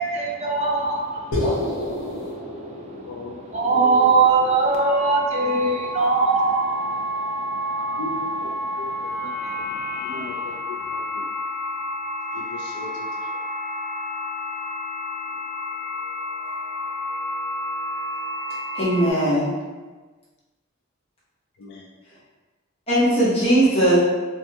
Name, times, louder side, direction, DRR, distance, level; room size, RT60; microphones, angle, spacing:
voice 1, 0.0-8.0 8.7-8.9 9.2-10.5, right 4 dB, 30° right, -2 dB, 0.5 m, -23 dB
sound 1, 1.3-5.7, left 1 dB, 80° left, 0.9 m, -30 dB
voice 2, 3.1-4.1 8.0-8.5 8.8-8.9 9.2-9.3 10.0-10.5 11.1-11.2 12.3-13.1 21.6-21.8, left 2 dB, 55° left, -2 dB, 0.3 m, -37 dB
sound 2, 4.7-19.1, left 1 dB, 5° right, 0.8 m, -30 dB
voice 3, 18.7-19.5 22.9-24.0, right 1 dB, 30° left, -11 dB, 0.9 m, -19 dB
3.4 x 2.2 x 2.7 m, 1.3 s
head